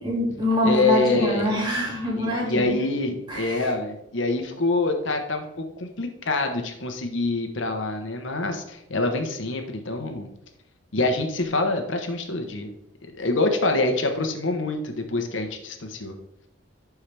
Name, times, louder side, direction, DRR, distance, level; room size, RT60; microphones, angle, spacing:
voice 1, 0.0-2.7 3.3-3.7, equal, 20° right, -4 dB, 2.3 m, -25 dB
voice 2, 0.6-1.6 2.1-10.3 10.9-12.7 13.2-16.2, left 3 dB, 70° left, 5 dB, 1.0 m, -26 dB
11.5 x 4.7 x 3.4 m, 0.79 s
head